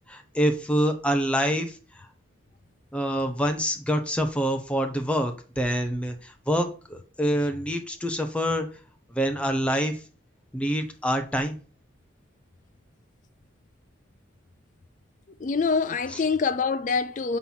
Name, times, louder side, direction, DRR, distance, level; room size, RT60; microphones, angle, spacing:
voice 1, 0.1-1.8 2.9-8.7 9.1-10.0 10.5-11.6 16.1-16.2, equal, 5° left, 0.8 m, -26 dB
voice 2, 15.4-17.4, left 5 dB, 40° left, 0.4 m, -25 dB
5.9 x 4.4 x 5.6 m
head